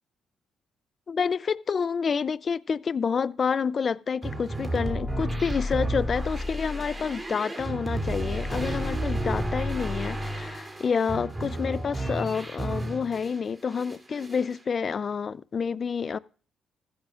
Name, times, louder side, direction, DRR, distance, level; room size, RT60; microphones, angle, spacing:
voice 1, 1.1-16.2, left 6 dB, 45° left, 0.4 m, -28 dB
sound 1, 4.2-13.4 13.7-14.5, right 1 dB, 20° right, 2.8 m, -31 dB
15.0 x 14.0 x 2.4 m
cardioid pair, 90°, 0 cm